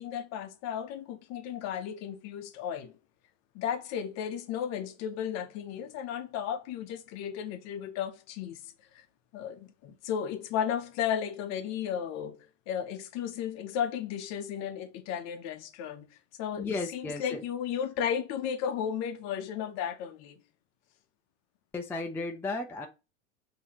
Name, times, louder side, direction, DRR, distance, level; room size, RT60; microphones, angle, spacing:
voice 1, 0.0-2.9 3.5-8.6 8.9-9.0 9.3-16.1 16.4-20.4, left 8 dB, 45° left, 0.8 m, -34 dB
voice 2, 16.6-17.4 21.7-22.9, left 3 dB, 5° left, 0.4 m, -34 dB
5.5 x 2.9 x 2.8 m
hypercardioid pair, 105°, 38 cm